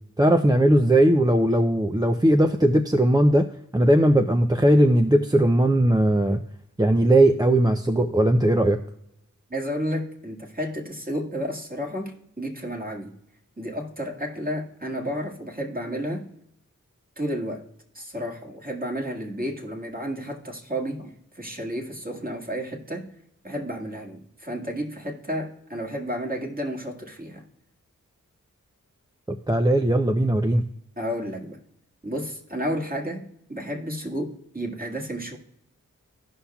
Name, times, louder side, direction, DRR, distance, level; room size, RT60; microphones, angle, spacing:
voice 1, 0.2-3.5 3.7-6.4 6.8-8.8 29.3-30.7, right 1 dB, 10° right, 5 dB, 0.5 m, -19 dB
voice 2, 9.5-13.1 13.6-16.2 17.2-17.6 17.9-23.0 23.4-27.4 31.0-31.6 32.0-33.2 33.5-35.4, equal, 30° right, 0 dB, 1.9 m, -31 dB
16.0 x 5.6 x 2.3 m, 0.78 s
cardioid pair, 45°, 32 cm